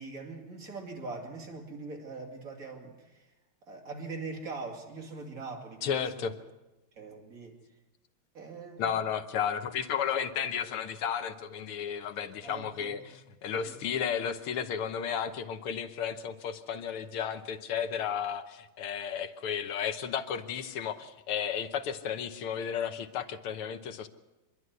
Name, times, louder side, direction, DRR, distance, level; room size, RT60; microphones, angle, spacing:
voice 1, 0.0-3.3 3.7-6.3 6.9-7.6 8.3-8.9 12.4-13.2 13.6-13.8, right 3 dB, 40° right, 0 dB, 3.0 m, -42 dB
voice 2, 5.8-6.3 8.8-13.0 13.4-24.1, left 8 dB, 90° left, 9 dB, 2.0 m, -33 dB
25.0 x 11.5 x 9.4 m, 1.1 s
omnidirectional pair, 2.4 m